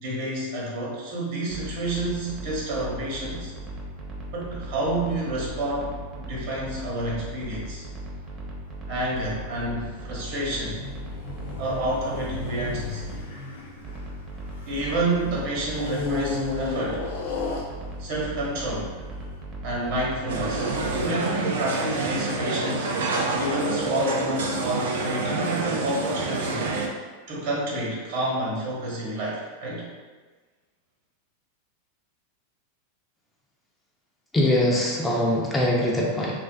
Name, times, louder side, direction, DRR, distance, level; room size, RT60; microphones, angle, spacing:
voice 1, 0.0-3.5 4.3-5.9 6.3-7.9 8.9-10.8 11.6-13.0 14.6-17.1 18.0-18.9 19.6-22.9 23.3-26.7 27.3-29.9, right 1 dB, 60° right, -5 dB, 0.9 m, -29 dB
sound 1, 1.5-13.3 13.8-21.1, right 1 dB, 30° right, 0.6 m, -38 dB
sound 2, 10.2-15.0 15.7-18.2 18.9-19.0, left 3 dB, 75° left, 0.4 m, -33 dB
sound 3, 20.3-26.9, right 3 dB, 80° right, 0.3 m, -27 dB
voice 2, 34.3-36.4, left 1 dB, 15° left, -3 dB, 0.4 m, -22 dB
2.4 x 2.3 x 2.2 m, 1.4 s
hypercardioid pair, 110°, 0 cm